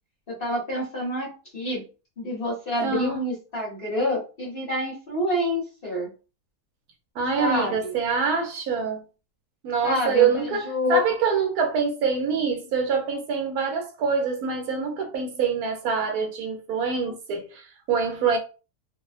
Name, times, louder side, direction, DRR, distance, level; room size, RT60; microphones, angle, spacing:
voice 1, 0.3-1.8 2.2-6.1 7.4-7.9 9.8-11.0, left 1 dB, 45° left, 0.9 m, -27 dB
voice 2, 2.8-3.2 7.2-9.0 9.6-18.4, right 5 dB, 75° right, 1.1 m, -25 dB
2.7 x 2.1 x 2.3 m
omnidirectional pair, 1.7 m